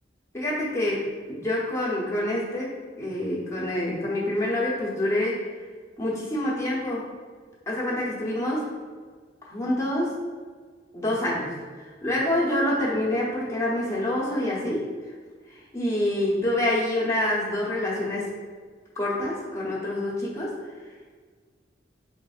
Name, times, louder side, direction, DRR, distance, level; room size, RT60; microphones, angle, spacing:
voice 1, 0.3-2.7 3.0-5.4 6.0-7.1 7.7-8.7 9.4-10.2 10.9-14.9 15.5-18.3 19.0-20.6, left 1 dB, 15° left, -6 dB, 0.8 m, -27 dB
4.2 x 3.3 x 2.4 m, 1.5 s
head